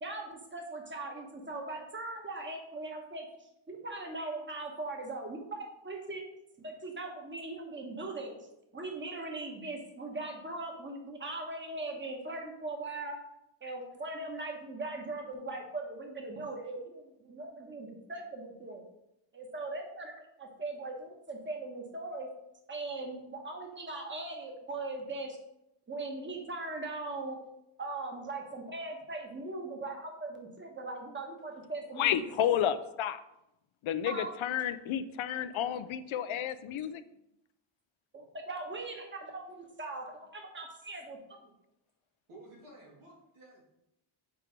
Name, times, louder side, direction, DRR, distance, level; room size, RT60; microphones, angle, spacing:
voice 1, 0.0-3.3 3.7-6.2 6.6-8.4 8.7-13.2 13.6-18.8 19.3-22.3 22.7-25.4 25.9-27.4 27.8-32.2 34.1-34.3 38.1-41.2, right 2 dB, 25° right, 2 dB, 1.2 m, -40 dB
voice 2, 32.0-33.2 33.8-37.0, left 10 dB, 75° left, 12 dB, 0.5 m, -31 dB
voice 3, 42.3-43.6, right 1 dB, 85° right, -3 dB, 2.4 m, -53 dB
4.8 x 4.5 x 5.1 m, 0.85 s
wide cardioid pair, 115°, 49 cm